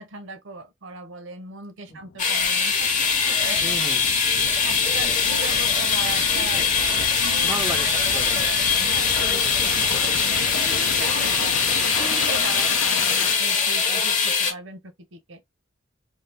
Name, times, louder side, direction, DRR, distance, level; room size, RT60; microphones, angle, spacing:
voice 1, 0.0-3.6 4.6-6.6 7.2-7.5 7.8-11.5 11.9-15.4, right 3 dB, 75° right, 0.7 m, -38 dB
sound 1, 1.9-13.4, left 6 dB, 75° left, 0.5 m, -34 dB
sound 2, 2.2-14.5, left 5 dB, 40° left, 0.9 m, -22 dB
voice 2, 3.6-4.1 7.4-8.4, equal, 5° right, 0.4 m, -33 dB
2.7 x 2.4 x 3.3 m
head